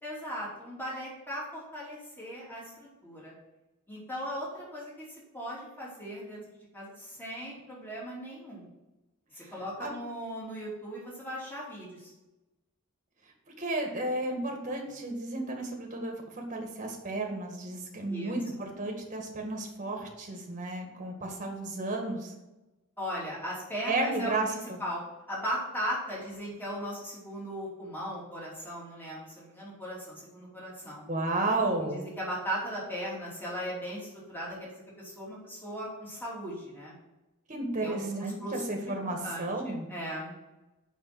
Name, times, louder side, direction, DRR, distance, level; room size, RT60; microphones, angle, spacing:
voice 1, 0.0-2.6 3.0-3.3 3.9-5.0 5.3-6.4 6.7-8.7 9.3-12.1 18.1-18.3 23.0-25.0 25.3-31.1 31.8-36.9 37.8-40.3, equal, 10° left, -6 dB, 2.8 m, -38 dB
voice 2, 13.6-22.3 23.9-24.8 31.1-32.0 37.5-39.9, right 2 dB, 35° right, 1 dB, 1.7 m, -33 dB
6.6 x 5.8 x 5.9 m, 1.0 s
head